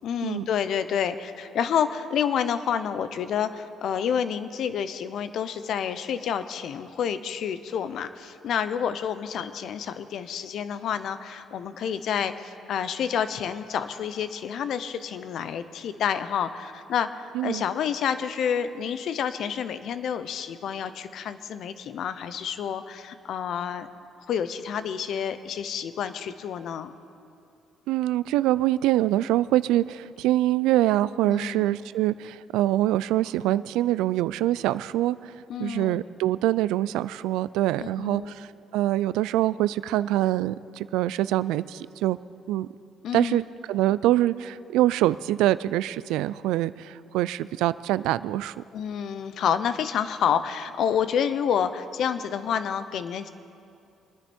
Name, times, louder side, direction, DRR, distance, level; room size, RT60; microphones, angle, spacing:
voice 1, 0.0-23.9 24.3-26.9 31.2-31.8 35.5-36.0 37.8-38.3 43.0-43.4 48.7-53.3, left 8 dB, 70° left, 12 dB, 0.7 m, -29 dB
voice 2, 27.9-35.3 35.6-38.5 38.7-42.2 42.5-42.7 43.1-43.4 43.7-48.6, right 14 dB, 85° right, 17 dB, 0.3 m, -24 dB
24.0 x 10.0 x 4.4 m, 2.5 s
supercardioid pair, 70°, 0 cm